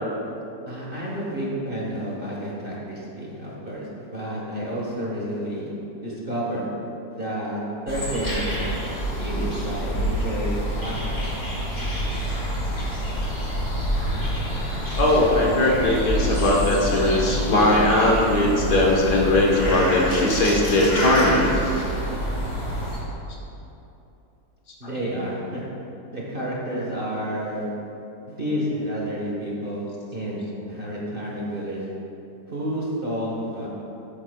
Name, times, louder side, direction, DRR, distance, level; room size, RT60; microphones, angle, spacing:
voice 1, 0.7-5.7 6.0-6.7 7.1-8.8 9.2-11.3 24.8-25.6 26.1-27.7 28.3-29.9 30.1-31.8 32.5-33.7, equal, 35° right, -5 dB, 1.3 m, -30 dB
sound 1, 7.9-23.0, equal, 40° left, 2.5 m, -27 dB
voice 2, 15.0-21.6, left 1 dB, 65° left, -3 dB, 1.7 m, -19 dB
13.0 x 8.9 x 2.3 m, 2.9 s
omnidirectional pair, 1.9 m